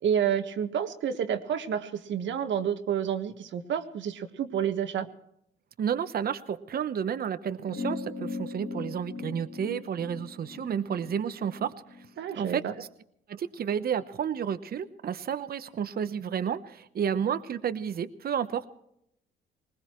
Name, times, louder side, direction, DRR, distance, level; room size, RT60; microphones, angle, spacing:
voice 1, 0.0-5.1 12.2-12.7, right 8 dB, 70° right, 8 dB, 1.5 m, -29 dB
voice 2, 5.8-12.1 12.3-12.9 13.3-18.7, right 8 dB, 50° right, 11 dB, 0.9 m, -31 dB
sound 1, 7.7-12.5, left 4 dB, 50° left, 3.0 m, -39 dB
20.5 x 20.5 x 3.1 m, 0.77 s
cardioid pair, 90°, 20 cm